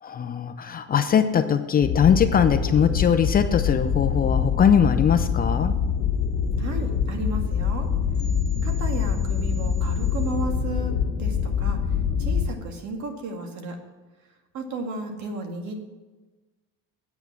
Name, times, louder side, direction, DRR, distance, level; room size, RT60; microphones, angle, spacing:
voice 1, 0.0-5.7, left 8 dB, 30° left, 9 dB, 0.6 m, -21 dB
sound 1, 1.8-12.5, left 7 dB, 45° left, 2.0 m, -25 dB
voice 2, 6.6-7.9 8.6-11.8 12.2-13.8 14.5-15.8, right 2 dB, 60° right, 4 dB, 2.0 m, -33 dB
8.9 x 8.4 x 5.9 m, 1.2 s
cardioid pair, 140°, 32 cm